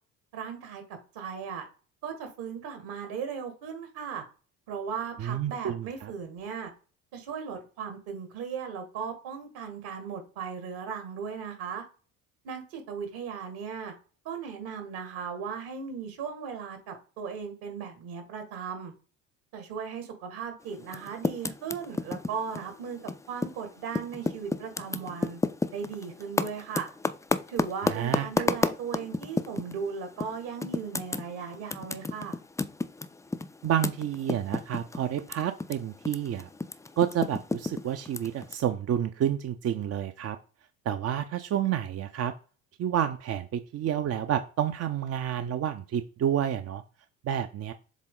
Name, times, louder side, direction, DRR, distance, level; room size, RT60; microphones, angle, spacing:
voice 1, 0.3-1.6 2.0-4.2 4.7-6.7 7.1-11.8 12.4-13.9 14.2-18.9 19.5-25.4 25.7-26.9 27.5-32.4, right 6 dB, 65° right, 2.2 m, -37 dB
voice 2, 5.2-6.1 27.8-28.4 33.6-36.5 37.0-40.4 40.9-42.3 42.8-46.8 47.2-47.7, right 10 dB, 40° right, 0.6 m, -29 dB
Typing, 20.8-23.6 23.9-29.8 30.2-30.3 30.6-35.7 36.0-38.5, left 3 dB, 10° left, 0.4 m, -31 dB
7.3 x 3.6 x 3.9 m
hypercardioid pair, 60°, 40 cm